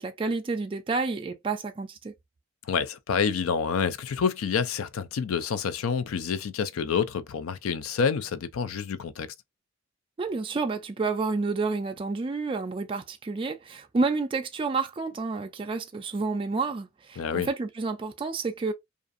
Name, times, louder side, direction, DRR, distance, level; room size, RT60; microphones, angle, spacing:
voice 1, 0.0-2.1 10.2-18.7, right 4 dB, 25° right, 0.3 m, -30 dB
voice 2, 2.6-9.3 17.2-17.5, left 6 dB, 75° left, 0.4 m, -28 dB
2.5 x 2.4 x 2.5 m
head